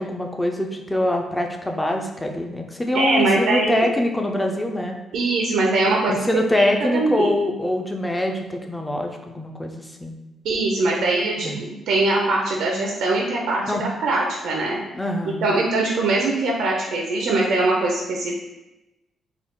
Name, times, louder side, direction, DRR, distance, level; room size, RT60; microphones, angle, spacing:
voice 1, 0.0-5.0 6.1-10.2 11.4-11.6 13.6-13.8 14.9-15.5, left 1 dB, 10° left, 3 dB, 0.4 m, -24 dB
voice 2, 2.9-3.9 5.1-6.2 6.5-7.3 10.4-14.8 15.4-18.3, right 2 dB, 85° right, -2 dB, 0.5 m, -22 dB
3.8 x 2.3 x 3.5 m, 0.99 s
cardioid pair, 150°, 0 cm